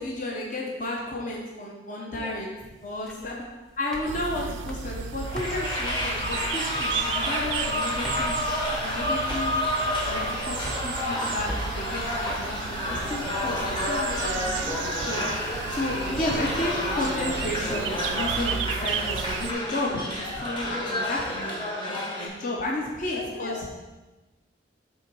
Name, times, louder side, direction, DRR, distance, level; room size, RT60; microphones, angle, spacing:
voice 1, 0.0-2.5 2.8-3.4 3.8-8.4 8.8-9.6 10.0-21.6 21.9-23.6, left 1 dB, 45° left, -2 dB, 0.9 m, -32 dB
sound 1, 2.7-21.1, equal, 5° left, 0.6 m, -45 dB
sound 2, 4.1-19.5, right 7 dB, 85° right, 0.3 m, -34 dB
sound 3, 5.3-22.3, left 1 dB, 25° left, 1.3 m, -30 dB
voice 2, 8.7-9.2 10.1-10.7 12.4-12.6 15.5-15.8 22.9-23.8, left 2 dB, 70° left, 1 dB, 1.1 m, -41 dB
7.9 x 3.9 x 4.6 m, 1.2 s
head